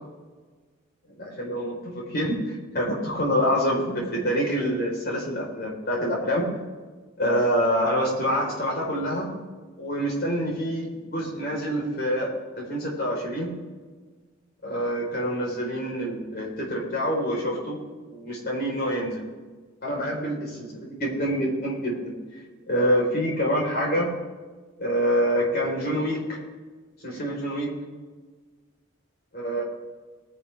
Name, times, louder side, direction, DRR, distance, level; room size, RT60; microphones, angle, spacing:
voice 1, 1.2-6.5 7.2-9.3 9.8-13.5 14.6-17.8 18.0-19.2 19.8-22.1 22.7-24.1 24.8-26.4 27.0-27.7 29.3-29.6, equal, 50° left, -2 dB, 4.4 m, -26 dB
21.5 x 10.0 x 3.5 m, 1.4 s
head